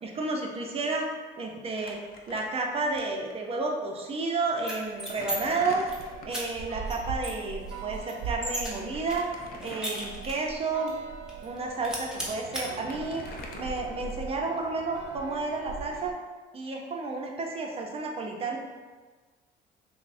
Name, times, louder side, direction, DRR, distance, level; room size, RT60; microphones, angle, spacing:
voice 1, 0.0-1.1 1.4-5.9 6.2-9.3 9.6-10.9 11.4-13.2 13.6-16.1 16.5-18.6, right 3 dB, 35° right, 1 dB, 0.5 m, -31 dB
Crumpling crinkling, 1.7-3.0 3.3-3.4 4.3-4.4 4.8-6.6 8.8-10.4 11.0-11.1 12.0-12.1 12.3-14.4, left 3 dB, 60° left, 0.5 m, -46 dB
sound 1, 4.6-5.4 5.7-6.0 6.3-6.4 6.9-7.0 7.2-8.7 9.1-10.5 10.9-11.0 11.3-11.6 11.8-12.6, right 1 dB, 5° right, 0.8 m, -35 dB
sound 2, 5.8-16.1, right 5 dB, 85° right, 0.4 m, -41 dB
5.7 x 2.1 x 2.5 m, 1.4 s
cardioid pair, 110°, 17 cm